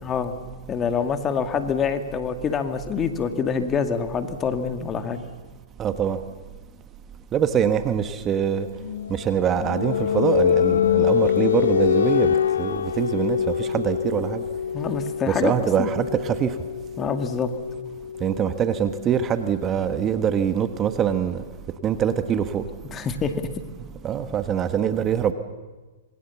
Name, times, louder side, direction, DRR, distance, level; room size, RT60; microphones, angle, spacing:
voice 1, 0.0-0.3 0.7-5.2 14.7-15.9 17.0-17.5 22.9-23.4, left 6 dB, 25° left, 8 dB, 2.1 m, -26 dB
voice 2, 5.8-6.2 7.3-8.7 9.1-14.4 15.3-16.6 18.2-21.4 21.8-22.6 24.0-25.3, right 8 dB, 25° right, 10 dB, 1.4 m, -24 dB
sound 1, 8.8-20.3, left 8 dB, 80° left, 0.8 m, -25 dB
27.0 x 22.0 x 7.2 m, 1.3 s
hypercardioid pair, 125°, 0 cm